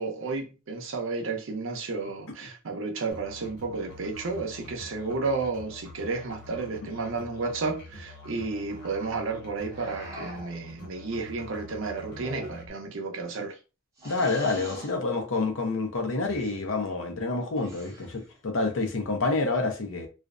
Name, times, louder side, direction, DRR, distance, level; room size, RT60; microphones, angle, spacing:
voice 1, 0.0-13.6, right 3 dB, 70° right, 0.6 m, -32 dB
Musical instrument, 3.1-12.7, left 2 dB, 55° left, 0.9 m, -46 dB
sound 1, 9.7-10.6 12.1-12.9 14.0-15.0 16.2-16.6 17.6-18.3, right 1 dB, 15° right, 0.8 m, -42 dB
voice 2, 14.0-20.1, left 3 dB, 85° left, 0.6 m, -28 dB
2.4 x 2.1 x 2.4 m
head